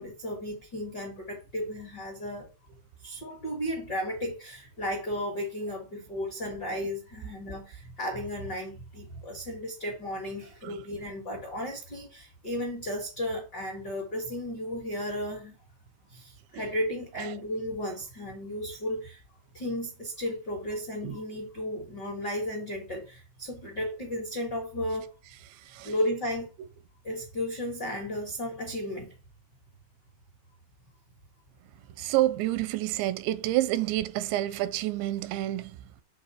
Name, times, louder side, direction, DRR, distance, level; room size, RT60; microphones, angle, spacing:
voice 1, 0.0-2.5 3.0-15.6 16.1-19.2 19.5-25.1 25.8-26.5 27.0-29.1, equal, 55° left, 1.1 m, -34 dB
voice 2, 32.0-35.7, right 15 dB, 85° right, 2.8 m, -28 dB
7.8 x 3.9 x 5.7 m
omnidirectional pair, 5.1 m